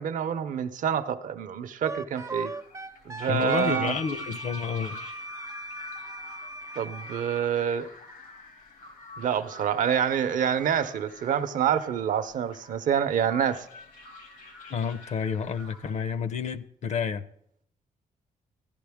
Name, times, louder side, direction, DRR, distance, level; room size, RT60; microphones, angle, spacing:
voice 1, 0.0-2.5 3.1-4.0 6.8-7.9 9.2-13.7, right 8 dB, 70° right, 0.7 m, -27 dB
Wind instrument woodwind instrument, 1.8-7.5, right 2 dB, 20° right, 0.4 m, -38 dB
sound 1, 2.1-16.2, left 3 dB, 90° left, 2.4 m, -48 dB
voice 2, 3.3-5.0 14.7-17.3, left 6 dB, 55° left, 0.7 m, -30 dB
13.5 x 11.0 x 3.5 m
cardioid pair, 100°, 14 cm